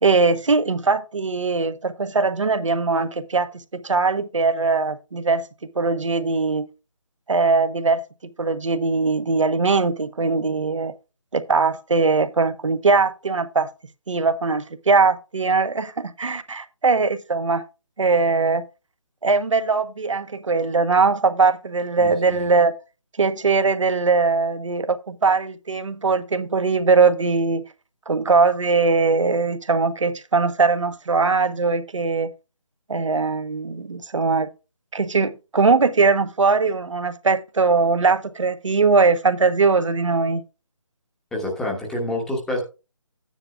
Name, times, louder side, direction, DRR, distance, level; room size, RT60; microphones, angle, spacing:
voice 1, 0.0-5.5 5.7-6.7 7.3-8.0 8.4-10.9 11.3-13.7 14.1-17.6 18.0-18.6 19.2-22.7 23.2-27.6 28.1-32.3 32.9-34.5 34.9-40.4, right 4 dB, 70° right, 1.2 m, -20 dB
voice 2, 41.3-42.6, left 1 dB, 5° left, 1.2 m, -27 dB
13.0 x 9.8 x 2.3 m
figure-of-eight pair, 160°, 16 cm